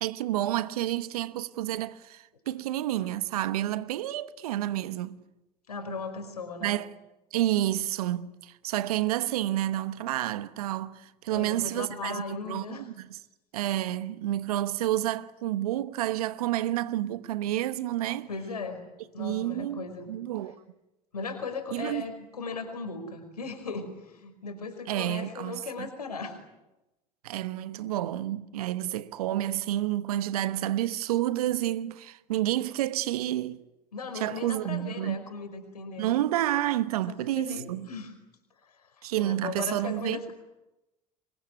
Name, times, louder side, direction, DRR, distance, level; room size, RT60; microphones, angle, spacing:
voice 1, 0.0-5.2 6.6-6.9 7.3-13.2 13.5-18.3 19.2-20.5 21.7-22.0 24.9-25.9 27.2-33.6 34.1-35.2 36.0-37.9 39.0-40.3, right 13 dB, 75° right, 1.1 m, -30 dB
voice 2, 5.7-6.8 11.3-12.9 18.3-18.8 19.1-20.1 21.1-26.4 33.9-36.2 37.1-38.1 38.6-38.8 39.2-40.3, left 4 dB, 90° left, 5.0 m, -37 dB
27.5 x 23.0 x 9.5 m
hypercardioid pair, 70°, 19 cm